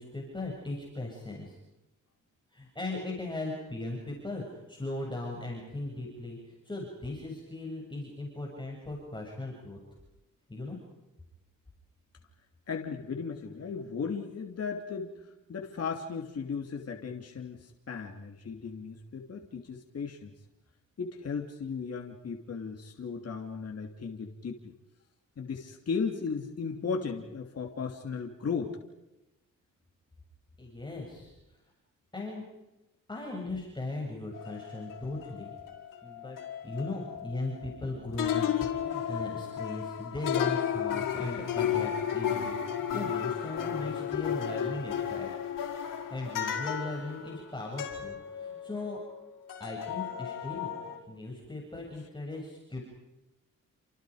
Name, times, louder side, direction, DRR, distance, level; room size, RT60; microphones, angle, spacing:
voice 1, 0.0-1.6 2.5-9.8 10.5-10.8 30.6-31.3 32.1-32.4 33.1-35.5 36.0-36.4 36.6-45.3 46.1-49.0 49.6-52.8, left 2 dB, 15° left, -1 dB, 7.4 m, -38 dB
voice 2, 12.7-20.3 21.0-24.7 25.4-28.8, left 5 dB, 50° left, 1 dB, 3.2 m, -36 dB
sound 1, 34.3-37.9 38.2-49.2 49.5-51.0, left 9 dB, 80° left, 5.0 m, -34 dB
29.5 x 27.5 x 5.2 m, 0.97 s
cardioid pair, 90°, 32 cm